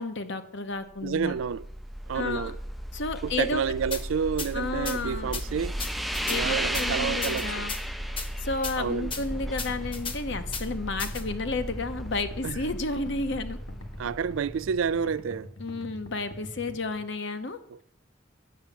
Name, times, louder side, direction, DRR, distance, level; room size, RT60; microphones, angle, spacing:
voice 1, 0.0-1.3 2.1-2.5 2.9-3.6 4.5-5.3 6.3-7.7 8.4-13.6 15.6-17.6, left 3 dB, 60° left, 0.9 m, -32 dB
sound 1, 0.9-15.1, equal, ahead, 0.3 m, -35 dB
voice 2, 1.0-1.7 2.1-2.6 3.2-5.7 6.3-7.6 8.8-9.1 12.4-12.6 14.0-15.5 17.7-17.8, right 6 dB, 75° right, 0.4 m, -29 dB
sound 2, 3.9-4.0 4.4-4.5 4.9-5.0 5.3-5.4 5.8-6.4 6.7-6.9 7.2-7.8 8.2-8.3 8.6-8.7 9.1-9.2 9.6-10.2 10.5-10.6 11.0-11.2, left 5 dB, 25° left, 1.0 m, -34 dB
sound 3, 9.1-17.0, left 1 dB, 75° left, 1.4 m, -44 dB
9.6 x 6.8 x 7.3 m
head